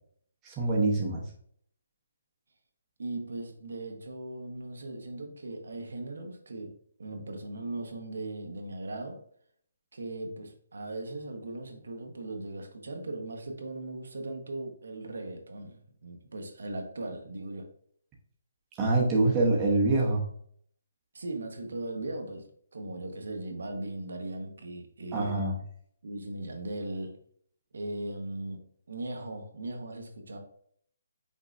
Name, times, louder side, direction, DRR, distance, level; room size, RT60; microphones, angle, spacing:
voice 1, 0.4-1.2 18.8-20.2 25.1-25.6, right 2 dB, 15° right, 0.8 m, -25 dB
voice 2, 3.0-6.7 7.0-9.2 9.9-17.7 21.1-22.5 22.7-25.4 26.0-27.2 27.7-30.4, right 2 dB, 80° right, 1.0 m, -38 dB
5.4 x 3.6 x 2.5 m
hypercardioid pair, 170°, 0 cm